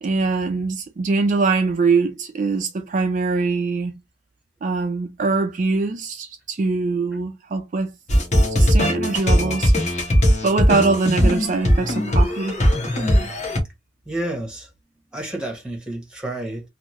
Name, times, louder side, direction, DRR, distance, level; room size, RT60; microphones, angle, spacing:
voice 1, 0.0-3.9 4.6-7.9 8.6-9.7 10.4-12.6, right 4 dB, 45° right, 0.4 m, -22 dB
sound 1, 8.1-13.6, equal, 40° left, 1.2 m, -19 dB
voice 2, 14.1-14.7 15.1-16.6, right 1 dB, 5° right, 1.0 m, -30 dB
3.4 x 2.1 x 2.9 m
head